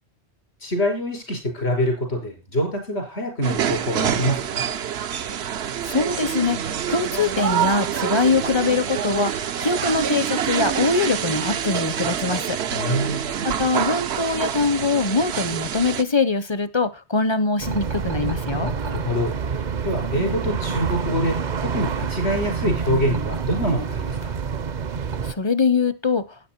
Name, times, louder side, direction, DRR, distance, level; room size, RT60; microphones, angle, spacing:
voice 1, 0.6-4.6 12.7-13.4 18.6-24.4, equal, 85° left, 5.6 m, -25 dB
sound 1, 3.4-16.0, right 9 dB, 80° right, 1.0 m, -26 dB
voice 2, 5.8-13.0 13.4-18.7 25.2-26.3, left 4 dB, 30° left, 0.6 m, -23 dB
sound 2, 17.6-25.3, right 6 dB, 50° right, 0.7 m, -27 dB
12.0 x 9.3 x 4.4 m
omnidirectional pair, 1.1 m